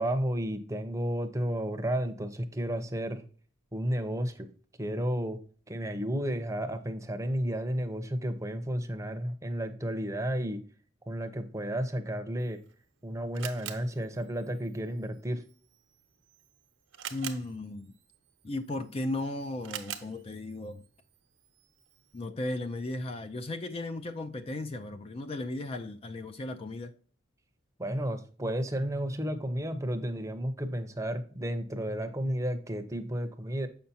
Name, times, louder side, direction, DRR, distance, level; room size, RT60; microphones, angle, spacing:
voice 1, 0.0-3.2 3.7-4.5 4.8-5.4 5.7-10.6 11.1-12.6 13.0-15.4 27.8-33.7, equal, 15° right, 0.7 m, -32 dB
Camera, 12.4-22.3, right 10 dB, 85° right, 0.8 m, -47 dB
voice 2, 17.1-17.9 18.4-20.8 22.1-26.9, left 2 dB, 30° left, 0.4 m, -36 dB
7.4 x 5.8 x 2.7 m
head